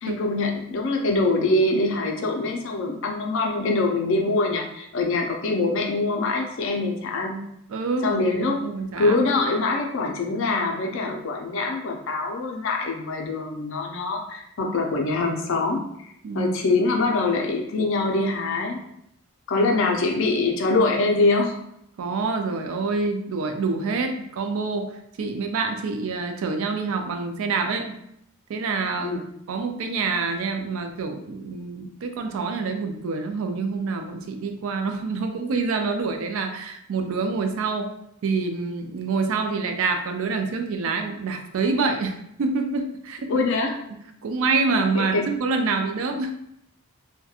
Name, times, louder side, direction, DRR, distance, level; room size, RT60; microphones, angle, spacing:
voice 1, 0.0-7.4 8.0-8.6 9.0-18.8 19.5-21.6 29.0-29.2 43.3-43.8 44.9-45.3, left 3 dB, 60° left, 2 dB, 0.4 m, -24 dB
voice 2, 7.7-9.2 16.2-16.5 19.6-20.0 22.0-24.9 25.2-27.9 28.5-29.2 29.5-37.9 38.2-43.5 44.2-46.3, right 4 dB, 65° right, 5 dB, 0.3 m, -26 dB
2.8 x 2.2 x 2.3 m, 0.75 s
head